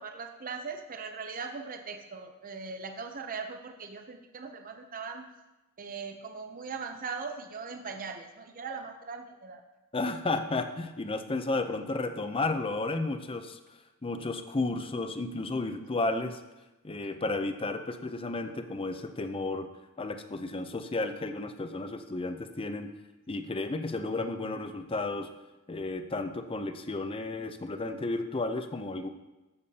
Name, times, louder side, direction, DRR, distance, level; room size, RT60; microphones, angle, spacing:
voice 1, 0.0-5.3 5.8-9.6 17.0-17.1, right 5 dB, 40° right, 5 dB, 0.6 m, -40 dB
voice 2, 9.9-13.6 14.0-16.4 16.8-19.7 20.0-22.9 23.3-25.3 25.7-29.1, left 2 dB, 25° left, 8 dB, 0.5 m, -32 dB
13.5 x 7.0 x 2.8 m, 1.1 s
head